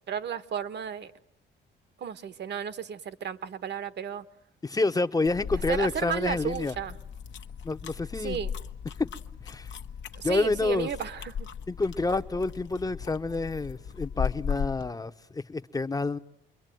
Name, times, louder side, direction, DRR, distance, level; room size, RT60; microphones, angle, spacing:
voice 1, 0.1-1.1 2.0-4.2 5.5-7.0 8.2-8.5 10.1-11.5, right 8 dB, 60° right, 1.4 m, -33 dB
voice 2, 4.6-6.7 7.6-8.4 9.0-9.1 9.4-9.7 10.2-10.9 11.7-16.2, left 3 dB, 20° left, 1.0 m, -28 dB
sound 1, 5.2-14.9, left 7 dB, 65° left, 1.2 m, -37 dB
28.0 x 22.5 x 9.3 m
cardioid pair, 90°, 20 cm